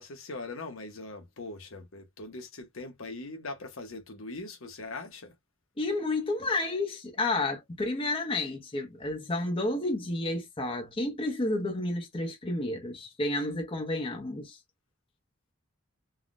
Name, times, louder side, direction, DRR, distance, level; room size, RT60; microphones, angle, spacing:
voice 1, 0.0-5.4, left 2 dB, 75° left, 0.9 m, -41 dB
voice 2, 5.8-14.6, left 2 dB, 25° left, 0.7 m, -31 dB
3.5 x 2.2 x 2.5 m
head